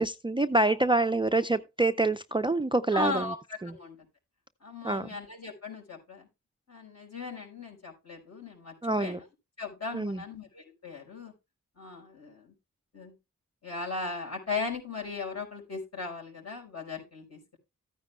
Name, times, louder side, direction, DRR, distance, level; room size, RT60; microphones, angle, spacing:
voice 1, 0.0-3.3 3.6-3.7 4.8-5.1 8.8-9.2 9.9-10.2, right 2 dB, 15° right, 0.4 m, -26 dB
voice 2, 2.9-4.0 4.6-6.3 6.7-9.2 9.6-11.3 11.8-12.5 12.9-13.1 13.6-17.6, left 3 dB, 55° left, 5.3 m, -37 dB
14.5 x 9.6 x 2.2 m
cardioid pair, 50°, 32 cm